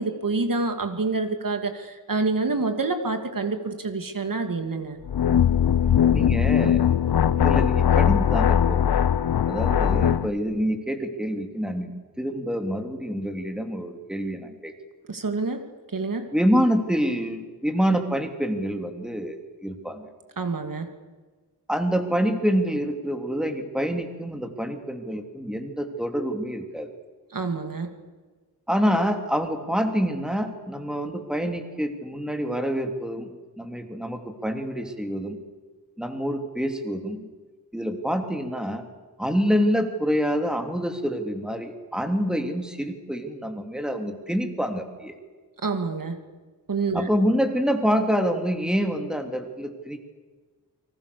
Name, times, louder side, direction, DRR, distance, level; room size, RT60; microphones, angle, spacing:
voice 1, 0.0-5.0 15.1-15.6 15.9-16.3 20.4-20.9 27.3-27.9 45.6-46.2 46.7-47.1, right 3 dB, 55° right, 6 dB, 2.5 m, -27 dB
sound 1, 5.1-10.3, left 9 dB, 75° left, 0.9 m, -20 dB
voice 2, 6.1-6.8 7.4-9.0 9.5-14.7 16.3-20.1 21.7-26.9 28.7-35.4 36.0-37.3 37.7-38.9 39.2-45.1 46.9-50.0, equal, ahead, 5 dB, 3.1 m, -26 dB
30.0 x 24.5 x 7.0 m, 1.4 s
wide cardioid pair, 90°, 39 cm